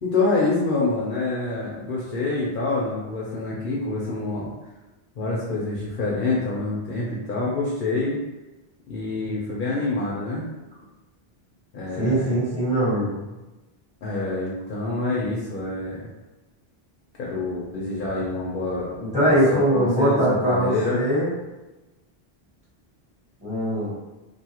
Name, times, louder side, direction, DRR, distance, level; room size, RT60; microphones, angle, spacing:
voice 1, 0.0-4.5 5.2-8.2 8.9-10.5 11.7-12.4 14.0-16.0 17.2-19.0 19.2-21.0, left 3 dB, 60° left, -5 dB, 0.7 m, -26 dB
voice 2, 12.0-13.2 19.0-21.3 23.4-23.9, right 1 dB, 5° right, -10 dB, 1.2 m, -21 dB
2.5 x 2.3 x 2.9 m, 1.1 s
omnidirectional pair, 1.0 m